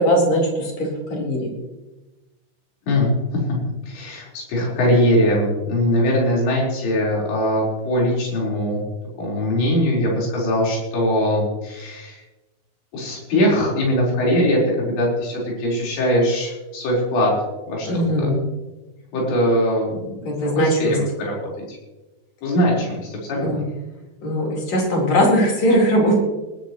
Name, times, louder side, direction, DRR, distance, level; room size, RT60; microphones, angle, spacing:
voice 1, 0.0-1.5 17.9-18.4 20.2-21.0 23.4-23.6 24.2-26.2, equal, 35° left, -2 dB, 5.0 m, -19 dB
voice 2, 2.9-3.4 3.9-8.8 9.2-12.2 12.9-17.3 17.7-18.3 19.1-21.4 21.7-21.8 22.4-23.7, equal, 60° left, -4 dB, 6.6 m, -21 dB
20.0 x 13.0 x 3.1 m, 1.1 s
omnidirectional pair, 5.7 m